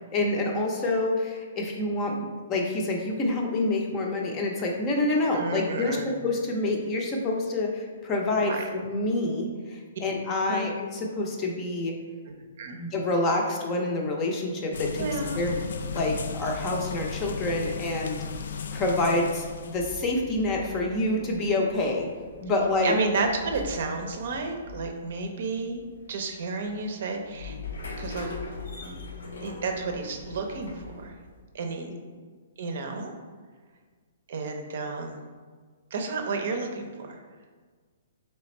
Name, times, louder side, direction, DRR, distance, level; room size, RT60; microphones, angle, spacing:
voice 1, 0.1-6.0 6.2-11.9 12.8-15.1 15.4-15.6 15.9-18.2 18.7-22.1 22.4-22.9 31.9-32.0, left 2 dB, 20° left, 0 dB, 0.6 m, -27 dB
voice 2, 5.3-6.1 8.5-8.7 10.5-10.7 12.6-12.8 15.0-15.4 22.8-25.8 26.1-27.6 28.0-28.3 28.8-29.0 29.4-31.1 31.5-31.9 32.6-33.1 34.3-35.2 35.9-37.2, right 3 dB, 55° right, 4 dB, 0.6 m, -31 dB
sound 1, 14.7-19.9, left 5 dB, 70° left, 0.3 m, -35 dB
sound 2, 19.7-31.4, left 3 dB, 90° left, 0.8 m, -42 dB
3.4 x 3.2 x 4.1 m, 1.5 s
hypercardioid pair, 160°, 0 cm